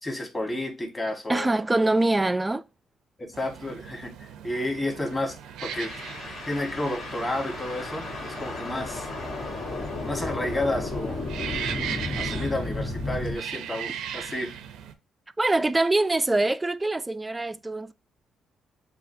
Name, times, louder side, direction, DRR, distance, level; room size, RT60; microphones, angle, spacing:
voice 1, 0.0-1.5 3.2-4.1 4.4-5.3 5.6-5.9 6.5-9.1 10.1-11.2 12.2-14.5, left 1 dB, 20° left, 1.4 m, -31 dB
voice 2, 1.3-2.6 15.4-17.9, right 2 dB, 15° right, 0.3 m, -24 dB
sound 1, 3.3-14.9, right 9 dB, 90° right, 0.6 m, -38 dB
sound 2, 5.7-13.4, left 2 dB, 70° left, 2.0 m, -33 dB
6.9 x 2.4 x 2.6 m
cardioid pair, 90°, 0 cm